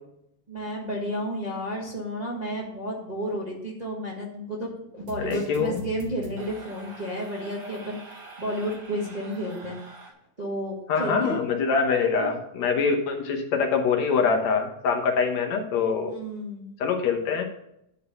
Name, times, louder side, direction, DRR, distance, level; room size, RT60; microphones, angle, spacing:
voice 1, 0.5-9.8 10.4-11.4 12.1-12.3 16.1-16.7, equal, 20° right, -3 dB, 1.4 m, -32 dB
sound 1, 5.0-10.1, right 2 dB, 40° right, 2.1 m, -43 dB
voice 2, 5.2-5.8 10.9-16.1 16.8-17.4, left 5 dB, 70° left, 4 dB, 2.2 m, -24 dB
10.5 x 4.7 x 6.7 m, 0.78 s
omnidirectional pair, 3.3 m